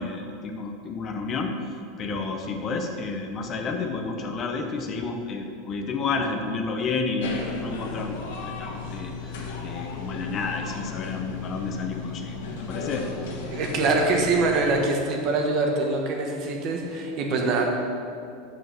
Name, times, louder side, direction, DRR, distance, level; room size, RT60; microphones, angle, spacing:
voice 1, 0.0-1.5 2.0-12.3 12.7-13.1, left 4 dB, 30° left, 4 dB, 0.8 m, -30 dB
sound 1, 7.2-14.8, left 4 dB, 80° left, 1.5 m, -35 dB
voice 2, 13.5-17.7, right 3 dB, 40° right, 1 dB, 1.4 m, -24 dB
6.8 x 6.3 x 6.9 m, 2.5 s
supercardioid pair, 150°, 0 cm